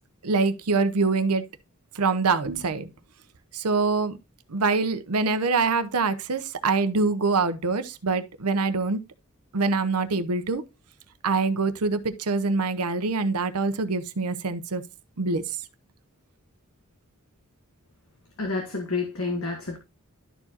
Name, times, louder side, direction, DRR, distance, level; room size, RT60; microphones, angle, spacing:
voice 1, 0.2-1.4 1.9-2.9 3.5-4.2 4.5-9.0 9.5-10.6 11.2-14.8 15.2-15.6, right 4 dB, 90° right, 0.8 m, -24 dB
voice 2, 18.4-19.8, left 3 dB, 65° left, 1.4 m, -29 dB
12.0 x 4.6 x 2.9 m
head